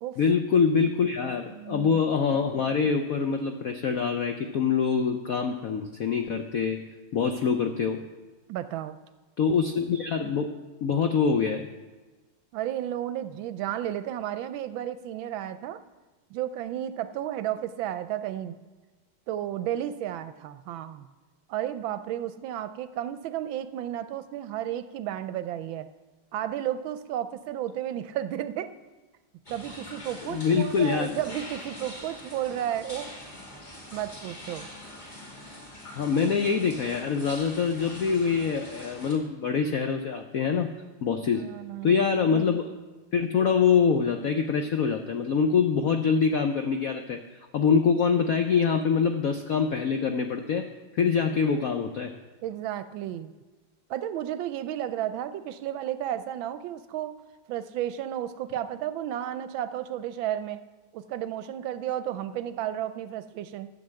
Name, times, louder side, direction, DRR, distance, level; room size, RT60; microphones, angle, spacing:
voice 1, 0.2-6.8 7.1-8.0 9.4-10.5 10.8-11.7 30.3-31.2 35.9-40.7 41.0-41.5 41.8-42.7 43.1-47.2 47.5-50.7 50.9-52.1, left 6 dB, 75° left, 6 dB, 0.8 m, -25 dB
voice 2, 1.5-2.0 8.5-9.0 12.5-15.8 16.3-18.6 19.3-21.1 21.5-25.9 26.3-28.7 29.5-33.1 33.9-34.7 41.1-42.1 52.4-53.3 53.9-57.2 57.5-60.6 60.9-63.7, right 11 dB, 75° right, 12 dB, 1.3 m, -33 dB
sound 1, 29.5-39.1, left 1 dB, 20° left, 2.3 m, -44 dB
12.5 x 7.1 x 7.6 m, 1.2 s
omnidirectional pair, 2.3 m